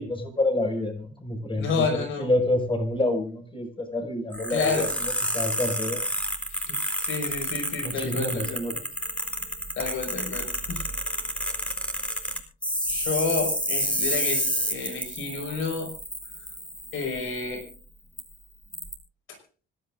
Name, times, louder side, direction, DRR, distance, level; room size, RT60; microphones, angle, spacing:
voice 1, 0.0-6.1 7.8-8.8, left 1 dB, 25° left, 4 dB, 5.8 m, -28 dB
voice 2, 1.6-2.3 4.5-4.9 6.5-8.6 9.8-10.8 12.3-12.4 12.9-15.9 16.9-17.6 19.3-19.4, left 4 dB, 80° left, 5 dB, 5.5 m, -30 dB
sound 1, 4.3-17.7 18.2-18.3 18.7-18.9, equal, 5° left, 4.1 m, -30 dB
25.5 x 13.0 x 2.6 m, 0.38 s
cardioid pair, 90°, 20 cm